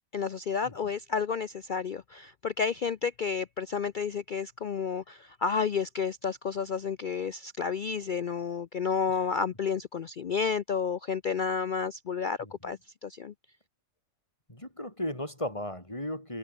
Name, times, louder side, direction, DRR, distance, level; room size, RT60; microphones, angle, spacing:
voice 1, 0.1-13.3, left 6 dB, 65° left, 0.5 m, -31 dB
voice 2, 12.4-12.7 14.5-16.4, left 1 dB, 20° left, 7.5 m, -36 dB
omnidirectional pair, 1.5 m